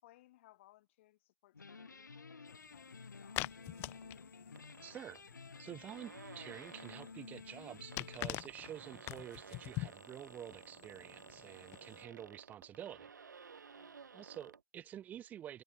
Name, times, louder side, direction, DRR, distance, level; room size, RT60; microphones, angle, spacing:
voice 1, 0.0-3.5 13.7-14.0, left 16 dB, 40° left, 4.5 m, -65 dB
sound 1, 1.5-8.2, left 4 dB, 90° left, 1.4 m, -53 dB
sound 2, 2.5-12.0, left 21 dB, 25° left, 0.6 m, -47 dB
sound 3, 4.5-5.2 5.6-5.7 5.9-7.2 7.8-14.6, right 5 dB, 80° right, 2.0 m, -55 dB
voice 2, 4.8-5.2 5.6-13.1 14.1-15.6, right 10 dB, 15° right, 1.2 m, -49 dB
hypercardioid pair, 135°, 10 cm